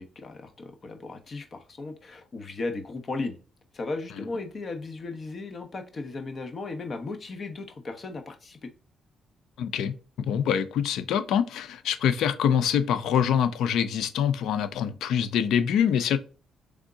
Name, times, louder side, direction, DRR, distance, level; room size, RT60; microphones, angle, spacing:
voice 1, 0.0-3.4 3.7-8.7, left 3 dB, 45° left, 1.0 m, -36 dB
voice 2, 9.6-16.2, left 8 dB, 80° left, 0.5 m, -25 dB
3.6 x 3.6 x 3.8 m
cardioid pair, 90°, 0 cm